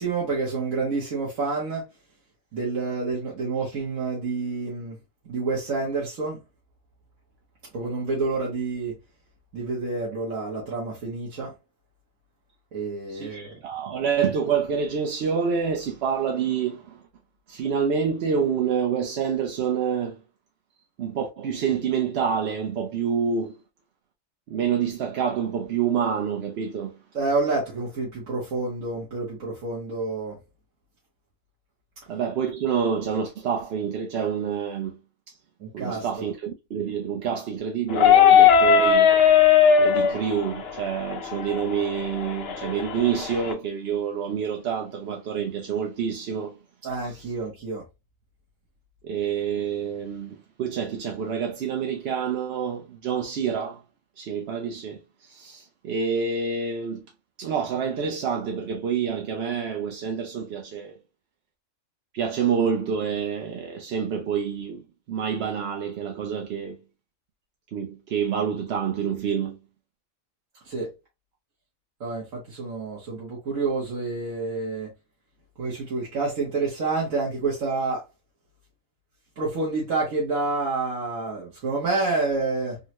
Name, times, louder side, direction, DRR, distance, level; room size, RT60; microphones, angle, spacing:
voice 1, 0.0-1.9 2.5-5.0 5.3-6.4 7.7-8.9 9.5-11.5 12.7-13.6 27.1-30.4 35.6-36.1 46.8-47.8 70.6-70.9 72.0-74.9 75.6-78.0 79.4-82.8, right 3 dB, 75° right, 1.4 m, -28 dB
voice 2, 13.1-17.0 17.5-20.2 21.0-23.5 24.5-26.9 32.1-35.0 35.3-35.4 35.7-39.1 39.8-46.6 49.0-53.8 54.2-57.0 57.4-60.9 62.1-66.8 67.7-69.6, right 7 dB, 60° right, 0.7 m, -27 dB
sound 1, 37.9-43.5, left 7 dB, 60° left, 0.7 m, -19 dB
3.8 x 2.1 x 2.8 m
omnidirectional pair, 1.4 m